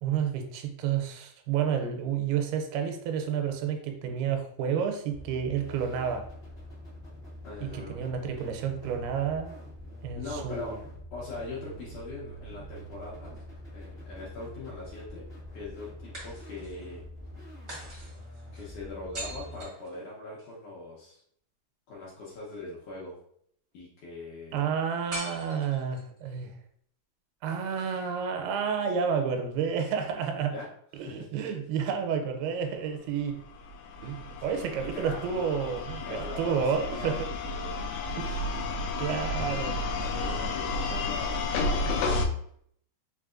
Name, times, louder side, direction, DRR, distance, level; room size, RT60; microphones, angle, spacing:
voice 1, 0.0-6.3 7.6-9.6 10.0-10.8 24.5-26.5 27.4-30.5 31.0-33.4 34.0-37.3 38.2-38.5 39.0-39.7, right 7 dB, 85° right, 5 dB, 2.5 m, -30 dB
sound 1, 5.1-19.6, equal, 50° left, 0.6 m, -45 dB
voice 2, 7.4-8.1 10.2-10.8 11.1-13.4 13.7-15.2 15.5-17.0 18.5-21.2 21.9-23.1 23.7-24.6 30.5-30.7 31.0-31.2 34.4-34.7 34.9-35.2 36.0-37.8 39.4-41.3 41.6-42.2, left 3 dB, 70° left, -6 dB, 1.9 m, -41 dB
sound 2, 13.0-14.1 16.1-16.9 17.7-20.5 25.1-26.2, right 1 dB, 60° right, 0.7 m, -43 dB
sound 3, 33.4-42.3, left 3 dB, 90° left, 1.8 m, -32 dB
5.7 x 3.3 x 2.5 m, 0.66 s
omnidirectional pair, 4.5 m